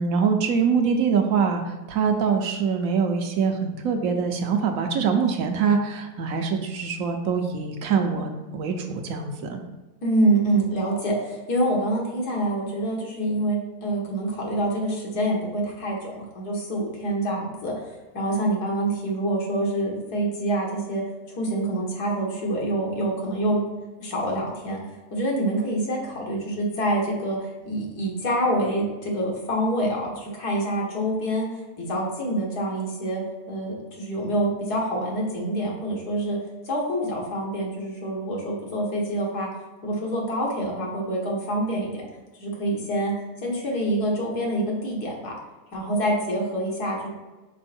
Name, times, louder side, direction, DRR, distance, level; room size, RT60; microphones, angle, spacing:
voice 1, 0.0-9.6, right 6 dB, 70° right, 4 dB, 1.1 m, -24 dB
voice 2, 10.0-17.7 18.1-21.0 21.4-23.6 24.0-24.8 25.1-31.5 31.8-36.4 36.7-39.5 39.8-42.0 42.4-43.1 43.4-45.3 45.7-47.1, right 1 dB, 90° left, -2 dB, 2.0 m, -26 dB
5.5 x 4.3 x 4.3 m, 1.2 s
omnidirectional pair, 1.6 m